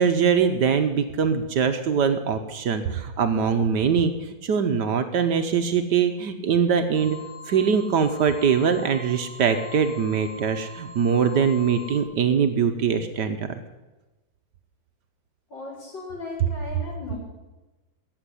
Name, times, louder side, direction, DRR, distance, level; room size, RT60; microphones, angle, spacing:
voice 1, 0.0-7.2 7.5-13.6, right 6 dB, 65° right, 8 dB, 1.3 m, -22 dB
sound 1, 6.9-12.0, left 4 dB, 10° left, 2.9 m, -42 dB
voice 2, 15.5-17.2, left 3 dB, 65° left, -3 dB, 4.9 m, -36 dB
15.0 x 7.1 x 9.7 m, 1.1 s
omnidirectional pair, 2.2 m